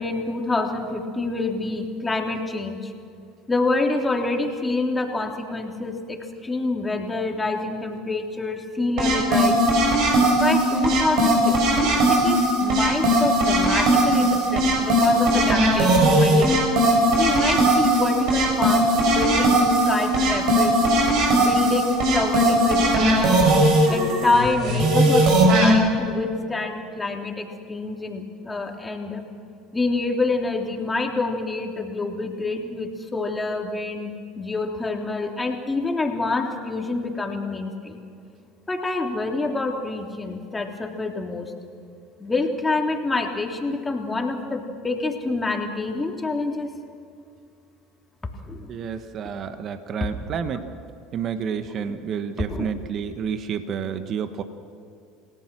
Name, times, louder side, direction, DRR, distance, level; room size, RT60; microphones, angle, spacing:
voice 1, 0.0-2.9 3.5-9.6 10.3-16.6 17.2-20.8 21.4-23.5 23.9-29.2 29.7-38.0 38.7-41.5 42.2-46.7 48.4-48.7 51.8-52.0 52.5-52.7, left 3 dB, 15° left, 2 dB, 3.3 m, -27 dB
sound 1, 9.0-25.7, right 1 dB, 65° right, 7.2 m, -19 dB
voice 2, 48.7-50.7 51.1-54.4, right 7 dB, 45° right, 9 dB, 1.5 m, -30 dB
29.0 x 18.0 x 6.2 m, 2.5 s
hypercardioid pair, 85°, 0 cm